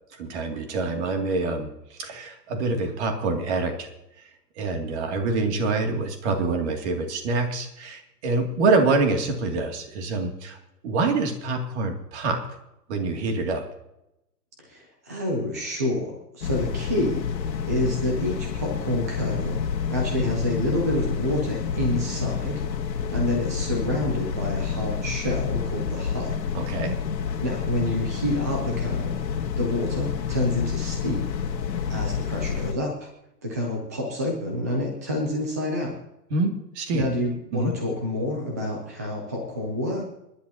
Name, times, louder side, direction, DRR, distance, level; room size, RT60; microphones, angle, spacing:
voice 1, 0.2-1.7 2.0-3.9 4.6-10.6 10.8-12.4 12.9-13.6 26.5-27.0 36.3-37.1 37.5-37.7, right 3 dB, 40° right, 4 dB, 2.6 m, -26 dB
voice 2, 14.6-19.6 19.9-22.6 23.1-26.3 27.4-29.2 29.6-31.3 31.9-33.1 33.4-35.9 36.9-40.1, left 1 dB, 10° right, 0 dB, 0.4 m, -28 dB
sound 1, 16.4-32.7, left 6 dB, 85° left, 1.7 m, -29 dB
29.5 x 11.0 x 2.8 m, 0.86 s
hypercardioid pair, 155°, 50 cm